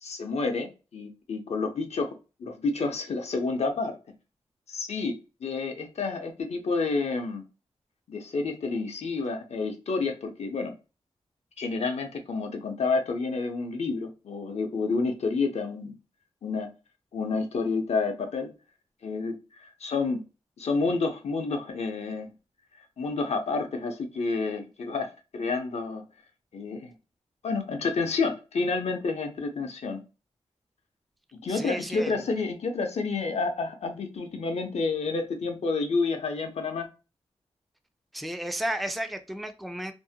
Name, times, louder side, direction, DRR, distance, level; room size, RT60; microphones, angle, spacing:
voice 1, 0.0-2.1 2.4-4.0 4.7-7.4 8.1-10.7 11.6-16.0 16.4-16.7 17.1-18.5 19.0-20.2 20.6-22.3 23.0-26.0 26.5-26.9 27.4-30.0 31.3-36.9, left 4 dB, 75° left, 5 dB, 0.6 m, -29 dB
voice 2, 31.5-32.2 38.1-39.9, right 1 dB, ahead, 7 dB, 0.3 m, -33 dB
2.6 x 2.1 x 2.7 m, 0.31 s
wide cardioid pair, 75°, 11 cm